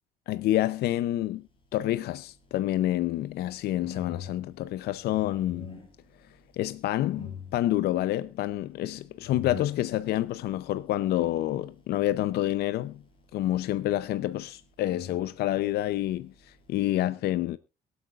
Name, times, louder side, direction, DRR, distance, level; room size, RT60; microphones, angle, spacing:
voice 1, 0.3-1.4 1.7-5.8 6.5-13.0 13.3-17.6, left 14 dB, 70° left, 0.6 m, -28 dB
sound 1, 1.5-16.9, left 6 dB, 30° left, 5.0 m, -47 dB
22.5 x 8.1 x 2.4 m
cardioid pair, 110°, 17 cm